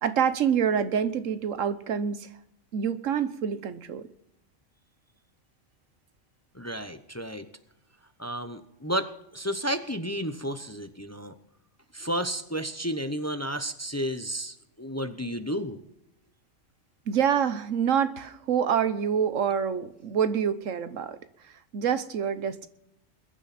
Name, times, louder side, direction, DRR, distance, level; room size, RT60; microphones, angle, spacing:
voice 1, 0.0-2.3 2.7-4.1 17.1-21.2 21.7-22.7, right 8 dB, 90° right, 13 dB, 1.3 m, -26 dB
voice 2, 6.5-7.5 8.2-11.3 11.9-15.8, equal, 15° left, 9 dB, 0.7 m, -32 dB
21.5 x 10.5 x 4.3 m, 0.80 s
omnidirectional pair, 1.3 m